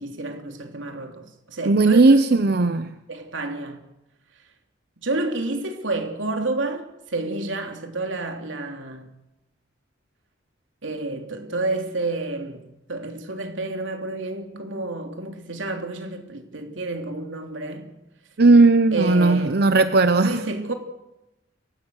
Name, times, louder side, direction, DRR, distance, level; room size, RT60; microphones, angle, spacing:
voice 1, 0.0-2.4 3.1-3.8 5.0-9.1 10.8-17.9 18.9-19.6 20.2-20.7, right 2 dB, 85° right, 3.2 m, -30 dB
voice 2, 1.7-2.8 18.4-20.3, right 3 dB, 55° right, 0.8 m, -16 dB
29.5 x 16.5 x 6.5 m
head